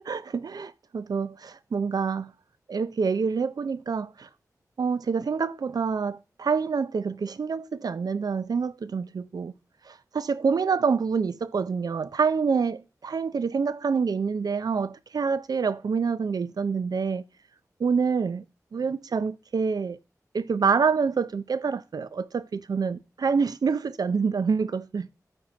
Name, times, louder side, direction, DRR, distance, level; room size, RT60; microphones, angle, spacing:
voice 1, 0.0-2.3 2.7-4.3 4.8-9.5 9.9-17.2 17.8-18.4 18.7-20.0 20.3-25.1, right 5 dB, 80° right, 0.5 m, -27 dB
9.0 x 4.3 x 6.3 m
wide cardioid pair, 100°, 6 cm